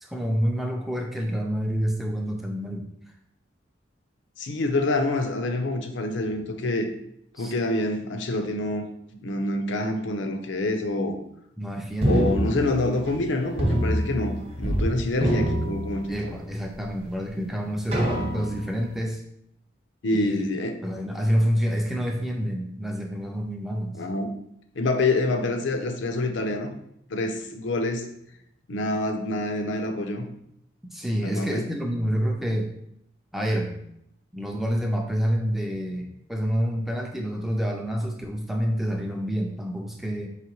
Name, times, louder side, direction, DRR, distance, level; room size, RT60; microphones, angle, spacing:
voice 1, 0.0-2.9 7.4-7.5 11.6-12.4 16.1-19.2 20.1-20.5 20.8-24.0 30.9-32.8 33.3-33.8 34.3-40.3, equal, ahead, 1 dB, 0.3 m, -28 dB
voice 2, 4.4-6.9 7.4-8.9 9.1-11.2 12.0-16.3 20.0-20.8 23.9-24.3 24.8-26.7 27.1-28.1 28.7-30.3 31.2-31.6, left 2 dB, 75° left, 5 dB, 0.5 m, -26 dB
sound 1, 12.0-13.3 13.6-14.9 15.1-16.5 17.0-17.1 17.9-18.8, equal, 30° right, 0.7 m, -26 dB
4.9 x 3.0 x 3.0 m, 0.75 s
head